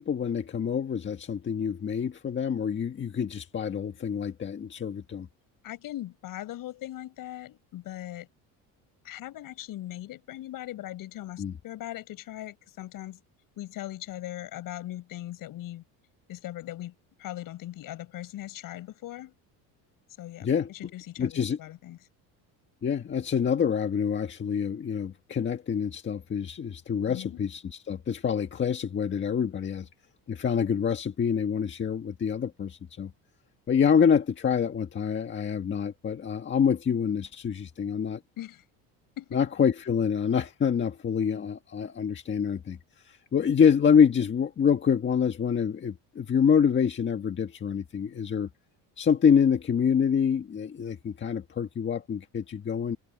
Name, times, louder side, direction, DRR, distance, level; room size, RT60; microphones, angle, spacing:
voice 1, 0.0-5.3 11.4-11.5 20.4-20.7 21.2-21.6 22.8-29.9 30.3-33.1 33.7-38.2 39.3-42.8 43.0-48.5 49.0-53.0, left 7 dB, 30° left, 1.6 m, -26 dB
voice 2, 5.6-8.3 9.0-13.2 13.6-15.8 16.3-19.3 20.2-22.0 27.0-27.4 38.4-38.6 39.2-39.4, left 14 dB, 60° left, 7.6 m, -39 dB
cardioid pair, 140°, 38 cm